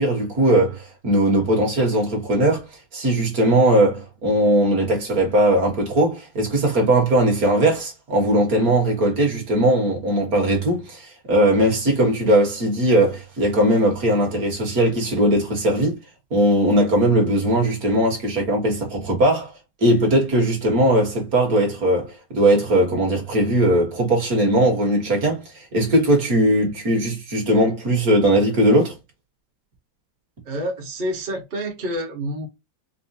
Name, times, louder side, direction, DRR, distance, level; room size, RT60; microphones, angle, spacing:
voice 1, 0.0-2.7 2.9-16.0 16.3-19.5 19.8-29.0, right 1 dB, 50° right, 1.6 m, -19 dB
voice 2, 30.5-32.5, equal, 35° right, 0.8 m, -28 dB
4.8 x 2.1 x 2.6 m
omnidirectional pair, 2.2 m